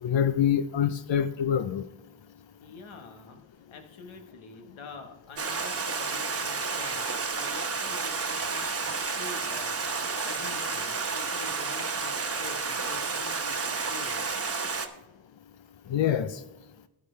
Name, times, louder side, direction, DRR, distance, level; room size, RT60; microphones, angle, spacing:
voice 1, 0.0-1.9 15.9-16.4, left 9 dB, 70° left, 11 dB, 0.7 m, -25 dB
voice 2, 2.6-7.1 7.3-9.8 10.0-14.4, left 4 dB, 90° left, 4 dB, 1.4 m, -46 dB
Stream, 5.4-14.9, right 4 dB, 30° right, 1.1 m, -31 dB
12.0 x 8.7 x 3.3 m, 0.95 s
cardioid pair, 55°, 46 cm